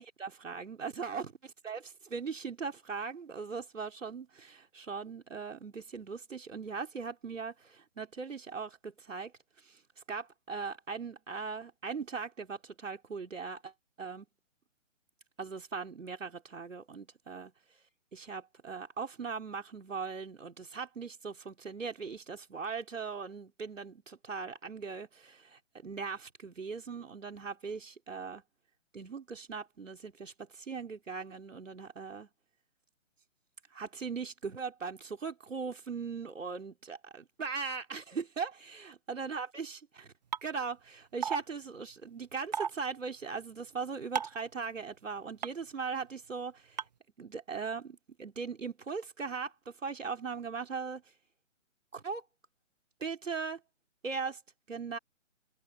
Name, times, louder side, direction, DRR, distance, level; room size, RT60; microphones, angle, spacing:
voice 1, 0.0-9.3 9.6-13.7 14.0-14.3 15.4-17.5 18.1-28.4 28.9-32.3 33.7-40.1 40.4-46.9 47.2-51.0 51.9-52.2 53.0-53.6 54.0-54.4 54.7-55.0, right 5 dB, 75° right, 3.7 m, -39 dB
sound 1, 40.3-40.4 41.2-41.4 42.5-42.7 44.2-44.4 45.4-45.5 46.8-46.9, right 7 dB, 35° right, 0.5 m, -31 dB
open air
figure-of-eight pair, 145°, 38 cm